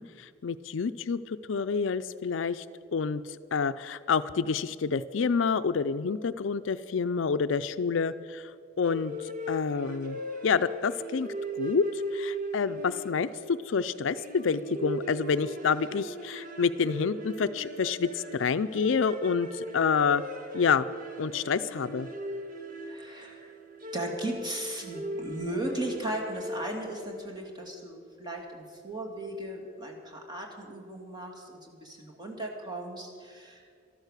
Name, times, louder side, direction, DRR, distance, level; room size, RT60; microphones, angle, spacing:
voice 1, 0.0-2.6 2.9-8.5 8.8-11.3 11.6-11.8 12.1-20.2 20.5-20.9 21.2-22.1, left 5 dB, 70° left, 13 dB, 0.5 m, -28 dB
sound 1, 8.8-27.3, equal, 45° right, 1.4 m, -39 dB
voice 2, 22.8-23.6 23.9-33.6, right 1 dB, 20° right, 0 dB, 2.4 m, -37 dB
13.0 x 13.0 x 6.6 m, 2.2 s
head